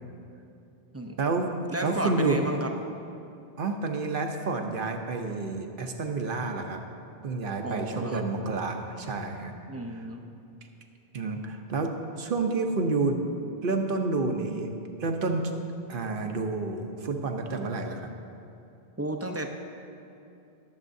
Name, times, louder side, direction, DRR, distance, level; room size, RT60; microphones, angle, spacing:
voice 1, 1.2-1.5 1.8-2.4 3.6-6.8 7.2-9.5 11.1-11.9 12.2-13.2 13.6-15.4 15.9-18.1, right 3 dB, 60° right, 4 dB, 0.9 m, -29 dB
voice 2, 1.7-2.7 7.6-8.3 9.7-10.2 19.0-19.5, right 1 dB, 20° right, 3 dB, 0.5 m, -33 dB
20.5 x 7.3 x 2.7 m, 2.7 s
omnidirectional pair, 1.1 m